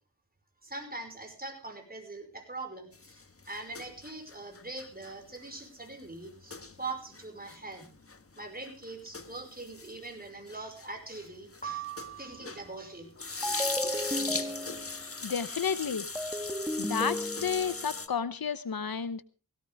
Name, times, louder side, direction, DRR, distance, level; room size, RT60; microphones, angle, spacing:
voice 1, 0.6-7.9 8.4-11.9 12.2-13.1, right 2 dB, 25° right, 5 dB, 5.3 m, -42 dB
sound 1, 2.9-12.8 13.0-18.1, left 4 dB, 35° left, 1.4 m, -39 dB
sound 2, 11.6-12.9, right 9 dB, 20° left, 6.0 m, -41 dB
sound 3, 13.4-15.1 16.2-17.9, equal, 5° right, 1.4 m, -34 dB
voice 2, 15.2-16.1 16.8-19.2, left 7 dB, 65° left, 14 dB, 0.9 m, -31 dB
17.0 x 17.0 x 3.5 m, 0.33 s
wide cardioid pair, 65°, 38 cm